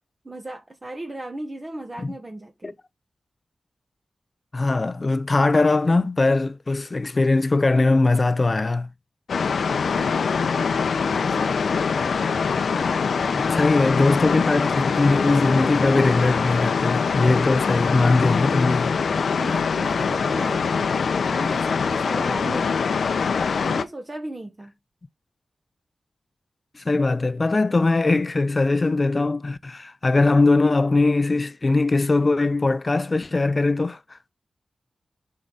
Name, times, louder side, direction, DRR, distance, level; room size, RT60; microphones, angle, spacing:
voice 1, 0.2-2.7 9.8-10.2 11.1-11.6 19.4-20.9 21.3-22.8 23.6-24.7, right 1 dB, 30° right, 1.3 m, -36 dB
voice 2, 4.5-8.9 13.3-19.0 26.7-34.2, left 3 dB, 35° left, 0.5 m, -21 dB
sound 1, 9.3-23.8, left 5 dB, 85° left, 0.7 m, -23 dB
8.2 x 4.8 x 3.9 m
wide cardioid pair, 85°, 0 cm